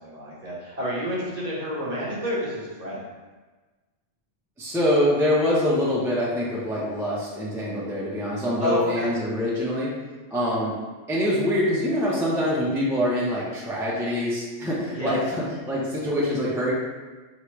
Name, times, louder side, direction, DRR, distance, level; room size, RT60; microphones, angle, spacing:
voice 1, 0.0-3.0 8.6-9.1 14.9-15.2, equal, 35° right, -7 dB, 0.9 m, -29 dB
voice 2, 4.6-10.0 10.3-10.8 11.1-16.7, left 1 dB, 5° right, -6 dB, 0.6 m, -25 dB
4.7 x 3.0 x 3.1 m, 1.3 s
omnidirectional pair, 1.3 m